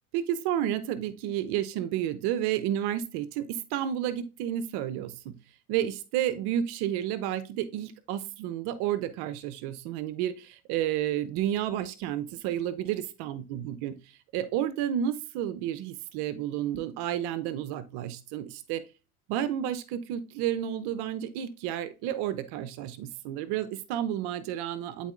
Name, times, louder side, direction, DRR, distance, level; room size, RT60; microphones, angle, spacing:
voice 1, 0.1-5.4 5.7-13.9 14.3-18.8 19.3-25.1, right 11 dB, 55° right, 12 dB, 0.8 m, -31 dB
11.5 x 4.1 x 2.5 m, 0.30 s
hypercardioid pair, 85°, 47 cm